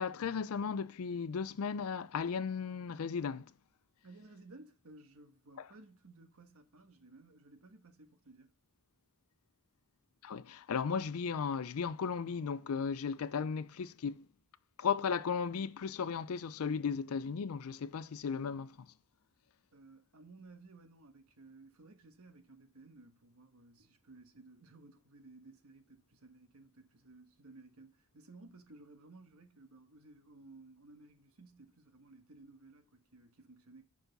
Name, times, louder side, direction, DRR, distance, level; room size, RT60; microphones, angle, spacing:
voice 1, 0.0-3.5 10.2-14.3 14.8-18.8, left 6 dB, 75° left, 0.4 m, -35 dB
voice 2, 4.0-8.5 19.7-33.8, right 3 dB, 75° right, 1.3 m, -57 dB
8.0 x 6.2 x 4.0 m
head